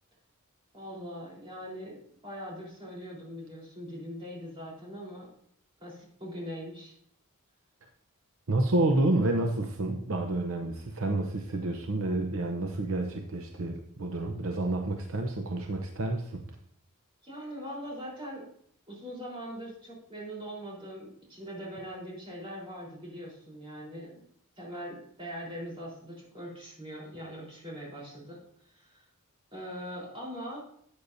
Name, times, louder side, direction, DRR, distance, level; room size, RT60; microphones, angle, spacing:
voice 1, 0.7-5.3 5.8-6.9 17.2-18.5 18.9-24.2 24.6-28.4 28.7-29.0 29.5-30.6, equal, 25° right, -4 dB, 4.0 m, -41 dB
voice 2, 8.5-16.4, right 2 dB, 65° right, 4 dB, 0.8 m, -29 dB
13.0 x 8.3 x 2.7 m, 0.65 s
head